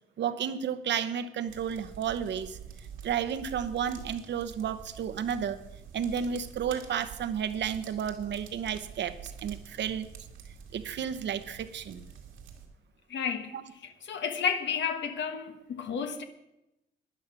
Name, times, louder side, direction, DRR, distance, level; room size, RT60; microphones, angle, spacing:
voice 1, 0.2-2.6 3.0-5.6 5.9-10.1 10.7-12.1 13.5-13.6, right 8 dB, 65° right, 1.0 m, -32 dB
sound 1, 1.5-12.7, right 7 dB, 90° right, 2.2 m, -47 dB
voice 2, 13.1-13.5 14.1-16.2, left 7 dB, 65° left, 1.3 m, -31 dB
12.0 x 10.5 x 5.9 m
cardioid pair, 90°, 20 cm